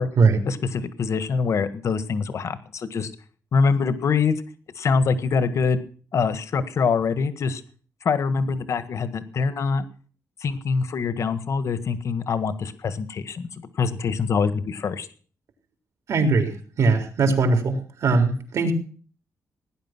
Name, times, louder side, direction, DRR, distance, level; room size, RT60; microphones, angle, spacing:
voice 1, 0.5-3.1 3.5-4.4 4.7-5.9 6.1-7.6 8.0-9.8 10.4-15.1, left 5 dB, 60° left, 13 dB, 1.7 m, -24 dB
voice 2, 16.1-16.5 16.8-18.7, right 4 dB, 65° right, 5 dB, 3.9 m, -20 dB
18.0 x 10.5 x 6.1 m, 0.42 s
wide cardioid pair, 125°, 6 cm